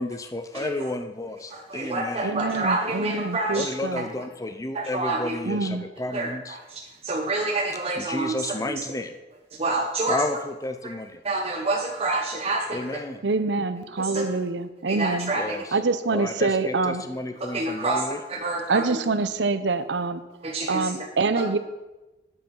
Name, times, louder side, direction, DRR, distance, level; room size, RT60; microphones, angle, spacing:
voice 1, 0.0-2.3 3.5-6.6 8.0-9.1 10.1-11.2 12.7-13.2 15.3-15.8 16.1-18.2, left 2 dB, 20° left, 8 dB, 0.6 m, -32 dB
voice 2, 1.5-3.7 4.7-5.4 6.1-8.8 9.6-10.2 11.2-12.9 14.0-14.2 14.9-15.6 17.5-18.0 18.3-19.0 20.4-20.9, right 2 dB, 35° right, -2 dB, 1.1 m, -28 dB
voice 3, 2.2-4.0 5.4-5.9 13.2-15.3 15.7-17.0 18.7-20.2 20.7-21.6, right 3 dB, 90° right, 11 dB, 0.7 m, -25 dB
10.5 x 7.3 x 5.5 m, 1.1 s
head